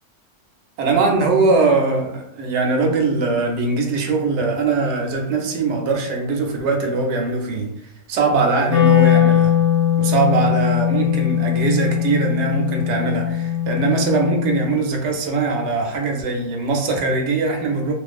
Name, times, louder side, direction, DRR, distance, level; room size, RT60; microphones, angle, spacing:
voice 1, 0.8-9.6 10.0-17.9, right 3 dB, 65° right, 2 dB, 0.7 m, -21 dB
Wind instrument woodwind instrument, 8.7-14.8, left 10 dB, 60° left, 0.9 m, -19 dB
2.5 x 2.3 x 2.4 m, 0.74 s
omnidirectional pair, 1.6 m